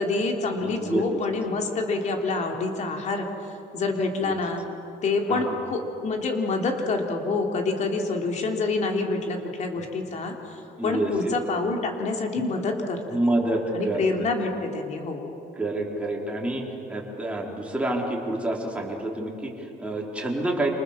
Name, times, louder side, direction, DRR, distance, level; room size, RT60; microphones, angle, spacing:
voice 1, 0.0-4.6 5.0-13.0 13.7-15.3, left 3 dB, 40° left, 2 dB, 3.6 m, -27 dB
voice 2, 0.6-1.2 4.2-4.3 5.3-5.5 10.8-11.4 13.1-14.3 15.6-20.7, right 1 dB, 5° right, -2 dB, 4.1 m, -28 dB
29.0 x 27.0 x 7.4 m, 2.9 s
cardioid pair, 170°, 18 cm